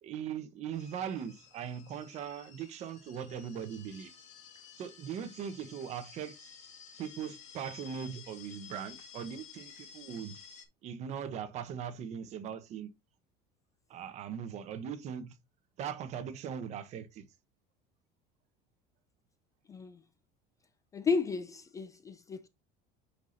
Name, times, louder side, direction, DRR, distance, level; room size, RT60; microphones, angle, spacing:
voice 1, 0.0-4.1 4.8-6.5 7.0-10.4 10.8-12.9 13.9-15.4 15.8-17.3, right 8 dB, 40° right, 1.0 m, -40 dB
sound 1, 0.7-10.6, left 7 dB, 40° left, 2.0 m, -53 dB
voice 2, 20.9-22.5, left 5 dB, 15° left, 0.4 m, -33 dB
8.1 x 5.8 x 2.7 m
cardioid pair, 165°, 18 cm